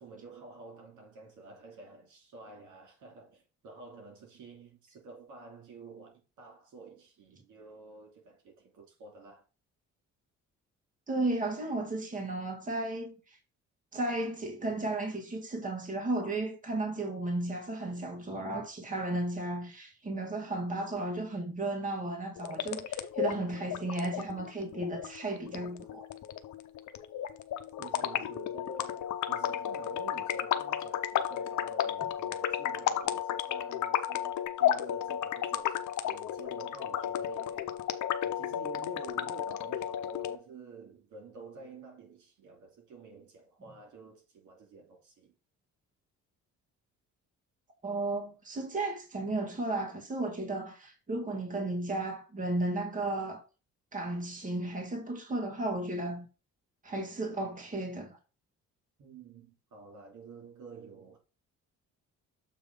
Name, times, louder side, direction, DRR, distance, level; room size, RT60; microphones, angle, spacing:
voice 1, 0.0-9.4 27.8-37.9 38.2-45.3 59.0-61.2, right 4 dB, 75° right, 2.9 m, -50 dB
voice 2, 11.1-13.4 13.9-26.1 47.8-53.4 53.9-56.3 56.8-58.2, right 2 dB, 25° right, 2.0 m, -34 dB
sound 1, 22.4-40.4, left 10 dB, 70° left, 0.8 m, -33 dB
7.5 x 3.2 x 5.4 m
cardioid pair, 90°, 30 cm